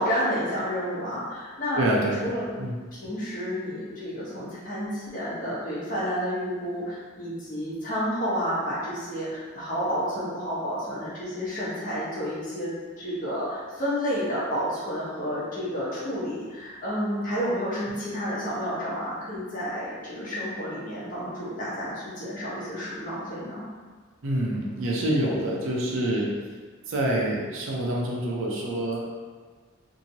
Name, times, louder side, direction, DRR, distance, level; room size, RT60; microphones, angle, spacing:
voice 1, 0.0-1.8 2.2-2.5 3.0-12.7 13.0-23.7, equal, 40° left, -8 dB, 0.9 m, -30 dB
voice 2, 1.7-2.3 2.6-2.8 24.2-26.3 26.9-29.1, right 1 dB, 80° right, -3 dB, 0.6 m, -26 dB
2.8 x 2.7 x 2.7 m, 1.4 s
head